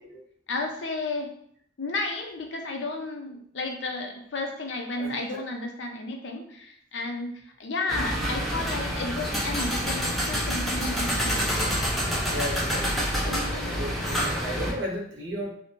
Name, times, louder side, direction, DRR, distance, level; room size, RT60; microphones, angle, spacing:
voice 1, 0.5-1.3 1.8-11.4 13.3-14.1, left 2 dB, 90° left, 3 dB, 0.5 m, -33 dB
voice 2, 5.0-5.4 12.3-15.5, equal, 80° right, -3 dB, 0.8 m, -35 dB
sound 1, 7.9-14.7, equal, ahead, 0.5 m, -27 dB
2.6 x 2.1 x 2.9 m, 0.65 s
head